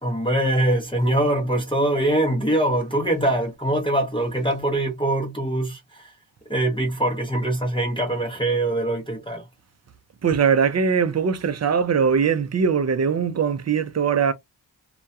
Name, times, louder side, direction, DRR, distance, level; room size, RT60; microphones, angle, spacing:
voice 1, 0.0-6.1 6.5-9.5, right 1 dB, 10° left, 0.7 m, -23 dB
voice 2, 10.2-14.3, right 6 dB, 35° right, 0.5 m, -21 dB
2.2 x 2.2 x 2.7 m
cardioid pair, 60°, 44 cm